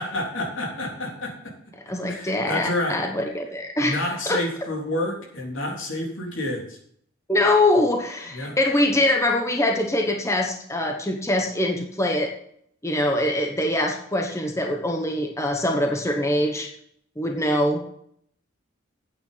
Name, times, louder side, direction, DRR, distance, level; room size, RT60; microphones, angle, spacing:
voice 1, 0.0-1.5 2.1-3.0 3.8-6.8 8.3-8.6, left 1 dB, 75° left, 0 dB, 3.6 m, -29 dB
voice 2, 1.9-4.4 7.3-12.3 12.8-16.7 17.2-17.8, left 1 dB, 15° left, 2 dB, 1.2 m, -23 dB
9.2 x 8.9 x 5.8 m, 0.66 s
head